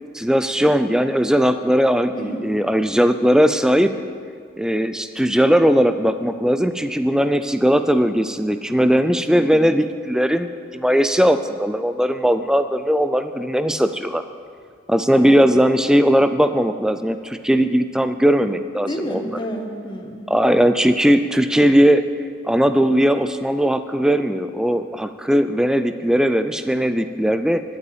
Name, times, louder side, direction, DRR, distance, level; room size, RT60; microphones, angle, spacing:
voice 1, 0.1-3.9 4.6-14.2 14.9-19.2 20.3-22.0 22.4-27.6, equal, 5° right, 10 dB, 0.4 m, -18 dB
voice 2, 2.1-2.5 9.3-9.6 15.1-15.5 18.9-20.3, equal, 25° left, 2 dB, 1.1 m, -30 dB
11.5 x 8.3 x 8.6 m, 2.1 s
head